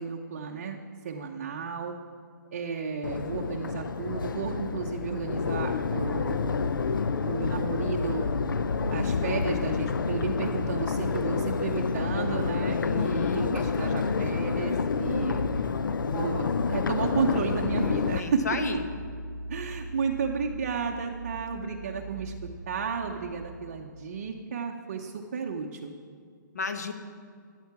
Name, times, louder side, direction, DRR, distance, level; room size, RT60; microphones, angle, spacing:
voice 1, 0.0-1.9 2.5-6.6 7.3-8.3 8.9-15.4 16.1-18.6 19.5-25.9, right 5 dB, 30° right, 1 dB, 0.7 m, -33 dB
Crowd, 3.0-18.2, left 5 dB, 80° left, 0.6 m, -28 dB
sound 1, 4.6-23.5, right 1 dB, 5° right, 1.5 m, -42 dB
voice 2, 12.8-13.5 18.2-18.8 26.5-26.9, left 4 dB, 55° left, 6 dB, 1.5 m, -32 dB
14.0 x 9.2 x 5.9 m, 2.2 s
hypercardioid pair, 175°, 11 cm